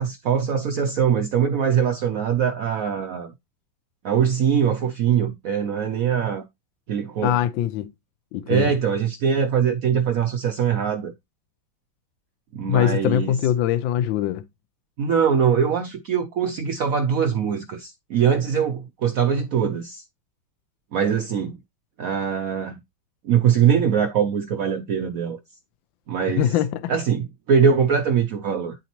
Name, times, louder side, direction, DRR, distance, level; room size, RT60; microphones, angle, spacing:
voice 1, 0.0-3.3 4.0-6.4 6.9-7.4 8.5-11.1 12.5-13.3 15.0-20.0 20.9-21.6 22.0-22.8 23.2-25.4 26.1-26.5 26.9-28.8, right 7 dB, 70° right, 0.8 m, -22 dB
voice 2, 7.2-7.9 8.3-8.8 12.7-14.4 26.3-26.9, left 11 dB, 80° left, 1.3 m, -22 dB
9.9 x 4.0 x 2.9 m
omnidirectional pair, 2.1 m